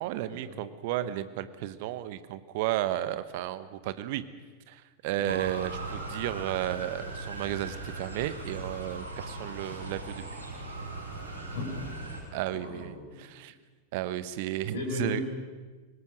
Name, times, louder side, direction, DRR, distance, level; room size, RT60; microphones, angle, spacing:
voice 1, 0.0-4.2 4.7-10.4 12.3-13.5 13.9-15.2, right 13 dB, 50° right, 13 dB, 1.2 m, -33 dB
Motor vehicle (road) / Siren, 5.3-12.2, right 2 dB, 90° left, 7.4 m, -39 dB
voice 2, 11.5-11.9 12.5-13.2 14.7-15.2, left 2 dB, 55° left, -1 dB, 4.8 m, -36 dB
26.0 x 20.0 x 6.3 m, 1.4 s
figure-of-eight pair, 90°, 0 cm